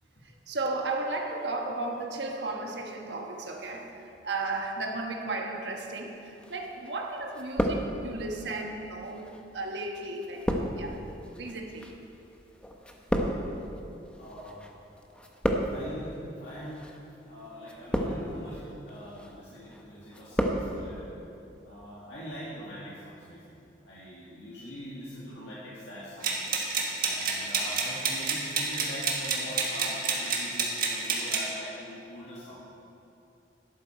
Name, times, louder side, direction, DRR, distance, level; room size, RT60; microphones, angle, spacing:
voice 1, 0.2-11.0 11.4-12.1, right 2 dB, 75° right, 2 dB, 1.3 m, -35 dB
sound 1, 6.4-7.0 7.3-8.3 9.1-14.7 15.0-16.0 16.7-17.0 17.6-18.4 18.9-19.3 19.7-20.7 20.9-21.0, equal, 5° left, 0.8 m, -31 dB
voice 2, 14.2-14.7 15.7-16.9 17.2-21.0 21.6-26.4 27.0-32.6, equal, 75° left, -8 dB, 2.0 m, -42 dB
sound 2, 26.2-31.5, right 4 dB, 55° right, 1.6 m, -29 dB
12.0 x 11.5 x 4.5 m, 2.8 s
head